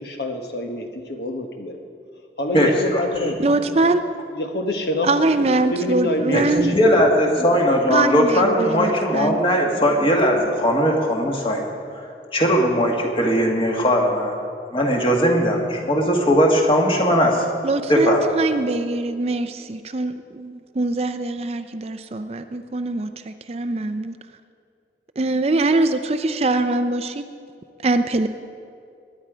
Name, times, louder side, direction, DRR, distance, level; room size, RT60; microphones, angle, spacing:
voice 1, 0.0-1.8 2.4-3.4 4.3-5.1 5.4-6.8, left 1 dB, 65° left, 4 dB, 1.2 m, -26 dB
voice 2, 2.5-3.3 6.3-11.7 12.0-14.4 14.7-17.5 17.9-18.2, equal, 30° left, 0 dB, 1.8 m, -19 dB
voice 3, 3.4-4.0 5.0-6.8 7.9-9.4 17.6-24.2 25.2-27.2 27.8-28.3, right 2 dB, 35° right, 9 dB, 0.5 m, -23 dB
21.0 x 9.5 x 5.0 m, 2.4 s
head